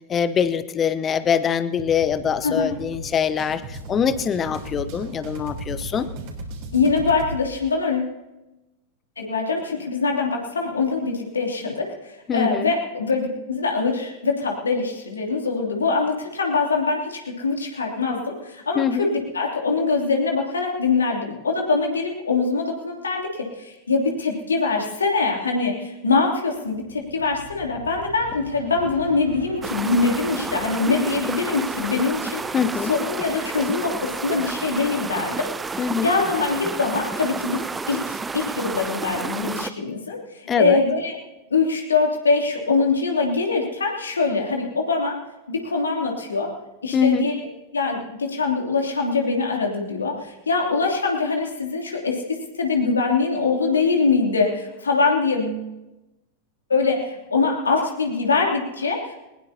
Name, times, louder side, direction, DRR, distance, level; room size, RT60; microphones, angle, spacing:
voice 1, 0.1-6.1 12.3-12.7 18.7-19.1 32.5-32.9 35.8-36.1 40.5-40.8 46.9-47.3, left 7 dB, 25° left, 14 dB, 0.8 m, -23 dB
sound 1, 1.8-7.4, right 1 dB, 45° right, 3.8 m, -36 dB
voice 2, 2.4-2.7 6.7-8.1 9.2-23.2 23.5-32.4 32.9-41.2 41.5-45.2 45.5-46.5 46.8-47.3 47.7-55.6 56.7-59.2, left 4 dB, 75° left, 0 dB, 2.9 m, -23 dB
sound 2, 26.5-35.7, right 3 dB, 75° right, 3.4 m, -44 dB
sound 3, 29.6-39.7, right 4 dB, 15° right, 0.5 m, -31 dB
21.0 x 20.0 x 2.8 m, 0.99 s
figure-of-eight pair, 90°, 0 cm